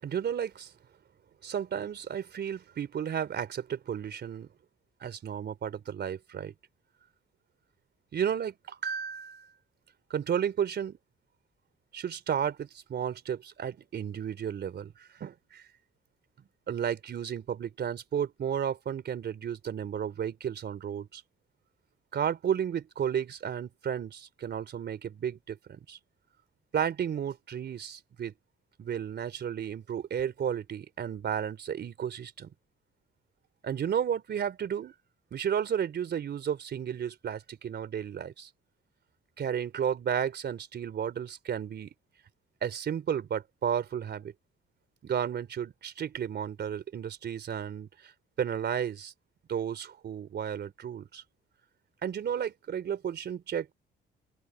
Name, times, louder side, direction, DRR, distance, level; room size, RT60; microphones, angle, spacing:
voice 1, 0.0-0.7 1.4-4.5 5.0-6.5 8.1-9.5 10.1-11.0 11.9-15.6 16.7-21.2 22.1-26.0 26.7-28.3 28.8-32.5 33.6-34.9 35.3-38.5 39.4-41.9 42.6-44.3 45.0-48.1 48.4-49.1 49.5-51.2 52.0-53.7, right 8 dB, 55° right, 3.7 m, -33 dB
open air
cardioid pair, 90°, 20 cm